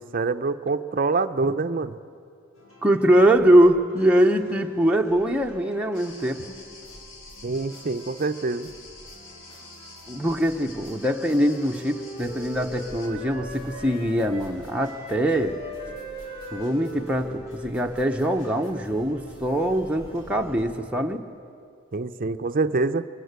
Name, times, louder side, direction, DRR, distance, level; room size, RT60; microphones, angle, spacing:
voice 1, 0.0-2.0 7.4-8.7 21.9-23.1, right 3 dB, 45° right, 9 dB, 0.6 m, -25 dB
sound 1, 2.5-20.6, equal, 90° left, 5.9 m, -49 dB
voice 2, 2.8-6.4 10.1-15.6 16.5-21.2, right 1 dB, 5° right, 1 dB, 0.8 m, -22 dB
sound 2, 5.9-13.1, left 2 dB, 70° left, 2.9 m, -47 dB
Wind instrument woodwind instrument, 10.8-18.8, equal, 35° left, 5.8 m, -40 dB
22.5 x 19.0 x 8.1 m, 2.4 s
head